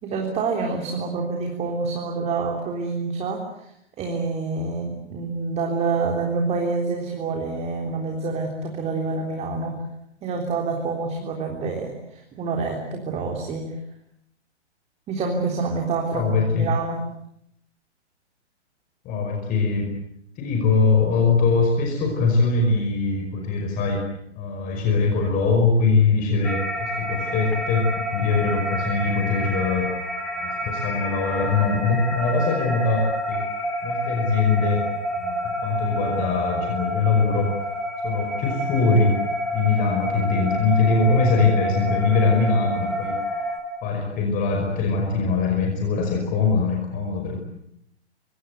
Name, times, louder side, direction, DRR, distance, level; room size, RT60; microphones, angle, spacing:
voice 1, 0.0-3.7 4.0-9.8 10.2-13.7 15.1-17.0, right 4 dB, 20° right, 2 dB, 3.7 m, -27 dB
voice 2, 16.1-16.7 19.1-19.9 20.4-24.0 24.4-29.9 30.4-33.5 33.8-34.9 35.2-37.5 38.0-39.2 39.5-43.2 43.8-47.4, left 4 dB, 25° left, 2 dB, 5.4 m, -22 dB
sound 1, 26.4-43.6, equal, ahead, 4.8 m, -28 dB
27.0 x 24.0 x 8.1 m, 0.75 s
figure-of-eight pair, 125°, 35 cm